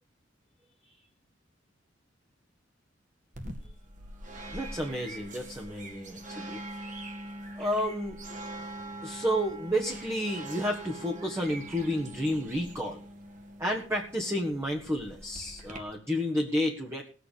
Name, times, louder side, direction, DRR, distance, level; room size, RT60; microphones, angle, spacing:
sound 1, 3.3-15.8, right 1 dB, 40° right, 2.2 m, -43 dB
voice 1, 4.5-7.2 7.6-8.2 9.0-13.0 13.6-17.1, equal, 15° right, -1 dB, 1.6 m, -31 dB
19.0 x 8.0 x 5.2 m, 0.41 s
head